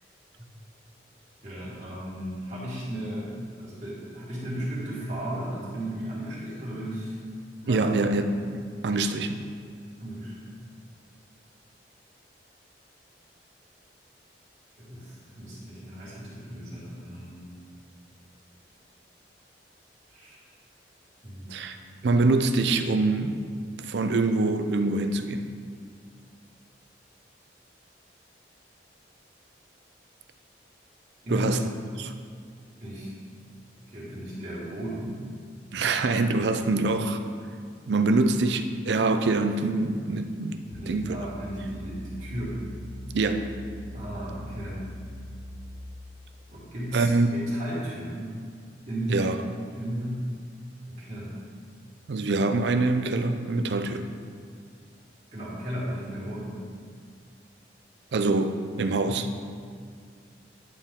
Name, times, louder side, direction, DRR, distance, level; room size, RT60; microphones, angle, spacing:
voice 1, 1.4-7.2 7.6-7.9 10.0-10.7 14.8-17.6 20.1-20.4 21.2-21.6 31.2-31.5 32.8-33.1 33.8-35.2 40.7-42.7 43.9-44.8 46.5-48.4 48.9-49.3 49.8-50.3 50.9-51.3 55.3-56.6 59.1-59.2, equal, 45° right, -9 dB, 1.8 m, -35 dB
voice 2, 7.7-8.6 8.8-9.4 21.5-21.8 22.0-23.4 23.8-25.5 31.3-31.7 32.0-32.1 35.7-37.2 37.9-41.2 43.1-43.5 46.9-47.3 49.1-49.4 52.1-54.1 58.1-59.3, right 3 dB, 75° right, 8 dB, 0.5 m, -25 dB
sound 1, 40.7-46.0, equal, 80° left, 0.8 m, -41 dB
9.7 x 4.4 x 3.7 m, 2.1 s
head